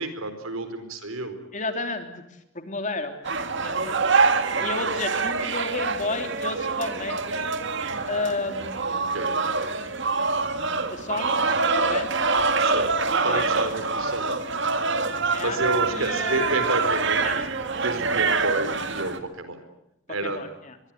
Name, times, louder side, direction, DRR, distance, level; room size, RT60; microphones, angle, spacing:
voice 1, 0.0-1.4 9.1-9.3 12.6-12.9 13.2-14.4 15.4-17.3 17.8-19.6 20.1-20.4, right 2 dB, 90° right, 10 dB, 4.5 m, -30 dB
voice 2, 1.5-2.1 2.5-4.0 4.3-7.5 8.1-9.2 10.9-12.2 13.1-13.5 15.3-15.6 15.9-16.6 17.2-17.5 20.2-20.8, left 3 dB, 40° left, 6 dB, 3.3 m, -32 dB
sound 1, 3.2-19.2, right 4 dB, 60° right, 2.0 m, -25 dB
24.5 x 22.5 x 9.1 m, 0.84 s
head